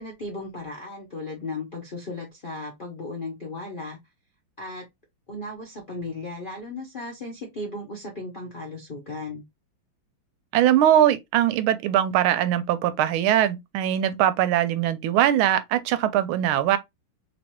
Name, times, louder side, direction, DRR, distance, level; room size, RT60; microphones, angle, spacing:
voice 1, 0.0-4.0 4.6-4.8 5.3-9.4, left 2 dB, 80° left, 0.4 m, -36 dB
voice 2, 10.5-16.8, right 11 dB, 85° right, 1.4 m, -21 dB
3.4 x 3.0 x 2.9 m
omnidirectional pair, 2.2 m